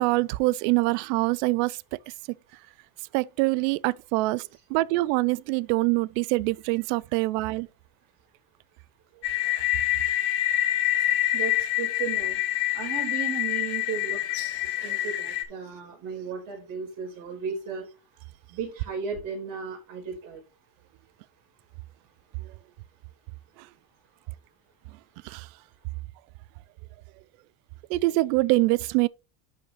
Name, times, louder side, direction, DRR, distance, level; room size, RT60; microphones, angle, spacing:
voice 1, 0.0-1.8 3.1-7.7 14.8-15.0 22.4-22.5 25.2-25.5 27.9-29.1, right 21 dB, 85° right, 0.6 m, -24 dB
sound 1, 9.2-15.4, left 14 dB, 90° left, 1.8 m, -26 dB
voice 2, 11.3-12.4 12.7-14.2 14.8-17.9 18.5-20.4, right 6 dB, 45° right, 4.9 m, -35 dB
11.0 x 5.0 x 3.2 m
cardioid pair, 180°, 46 cm